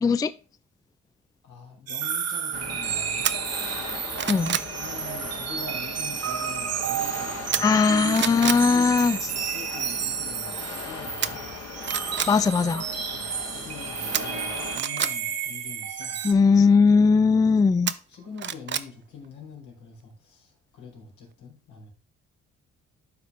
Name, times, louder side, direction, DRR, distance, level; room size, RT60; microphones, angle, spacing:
voice 1, 0.0-0.3 4.3-4.6 7.6-9.2 12.3-12.9 16.2-17.9, left 5 dB, 15° left, 0.3 m, -19 dB
voice 2, 1.4-3.3 4.7-11.5 13.1-16.3 18.1-21.9, left 5 dB, 80° left, 3.4 m, -45 dB
sound 1, 1.9-16.3, right 8 dB, 55° right, 1.1 m, -32 dB
sound 2, 2.5-14.8, left 5 dB, 55° left, 1.7 m, -39 dB
sound 3, 3.2-3.3 3.8-4.7 7.5-7.9 8.1-8.6 11.2-11.3 11.8-12.3 14.1-15.1 17.9-18.9 19.2-19.3, right 8 dB, 40° right, 0.5 m, -28 dB
12.0 x 4.3 x 3.3 m
cardioid pair, 90°, 30 cm